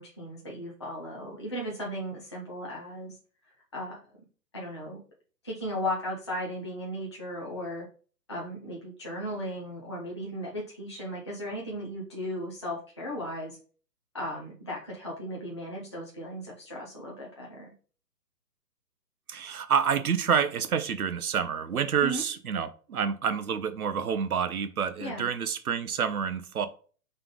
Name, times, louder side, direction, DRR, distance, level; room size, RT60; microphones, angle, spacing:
voice 1, 0.0-3.2 3.7-4.0 4.5-5.0 5.4-7.9 8.3-13.6 14.1-17.7 22.0-22.2 25.0-25.3, equal, 20° left, 0.4 m, -36 dB
voice 2, 19.3-26.7, right 7 dB, 65° right, 0.7 m, -28 dB
3.8 x 3.3 x 3.6 m
figure-of-eight pair, 130°, 49 cm